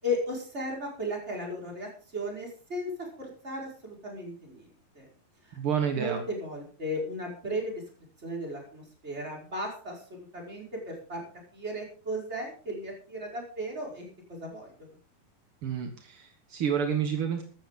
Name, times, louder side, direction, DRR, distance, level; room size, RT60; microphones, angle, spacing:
voice 1, 0.0-4.7 4.9-5.1 5.4-5.6 5.9-7.8 8.2-11.2 11.5-14.7, equal, 15° right, -1 dB, 5.1 m, -35 dB
voice 2, 5.5-6.2 15.6-17.4, right 7 dB, 60° right, 4 dB, 1.5 m, -29 dB
15.5 x 13.0 x 3.8 m, 0.41 s
omnidirectional pair, 4.5 m